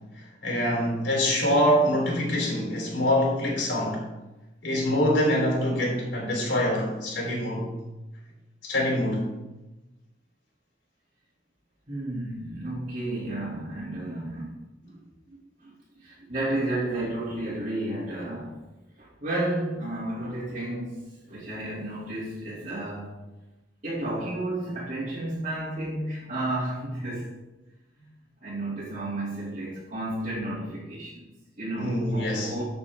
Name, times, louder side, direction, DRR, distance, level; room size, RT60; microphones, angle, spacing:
voice 1, 0.4-4.0 4.6-7.7 8.6-9.3 31.8-32.5, equal, 80° left, -2 dB, 3.9 m, -25 dB
voice 2, 11.9-14.6 14.8-18.6 19.0-23.2 23.8-27.3 28.0-28.1 28.4-32.6, right 1 dB, 40° right, -9 dB, 2.7 m, -32 dB
14.0 x 6.8 x 3.6 m, 1.0 s
head